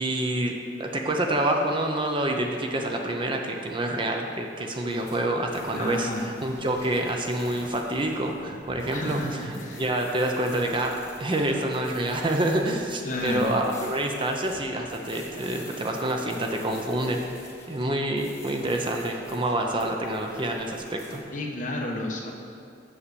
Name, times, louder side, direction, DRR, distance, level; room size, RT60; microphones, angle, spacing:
voice 1, 0.0-17.2 17.7-21.2, right 1 dB, 30° right, 2 dB, 0.7 m, -27 dB
sound 1, 4.9-21.2, left 1 dB, 15° left, 1.3 m, -45 dB
voice 2, 5.7-6.3 8.9-9.8 13.0-13.6 21.3-22.3, left 1 dB, 45° left, 0 dB, 1.2 m, -31 dB
7.1 x 6.4 x 6.9 m, 2.4 s
head